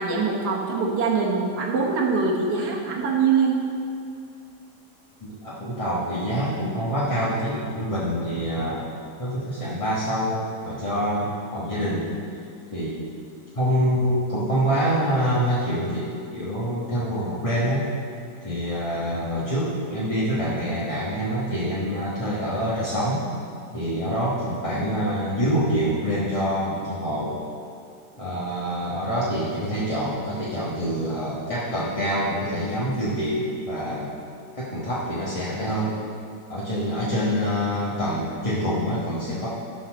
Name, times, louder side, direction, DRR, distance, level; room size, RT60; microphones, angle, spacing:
voice 1, 0.0-3.6, right 5 dB, 75° right, -3 dB, 1.7 m, -23 dB
voice 2, 5.2-8.9 9.2-12.1 12.7-13.0 13.5-17.9 18.4-23.2 23.7-27.4 28.2-34.1 34.6-35.9 36.5-39.5, equal, 20° left, -9 dB, 1.2 m, -26 dB
11.5 x 4.3 x 6.2 m, 2.5 s
omnidirectional pair, 1.8 m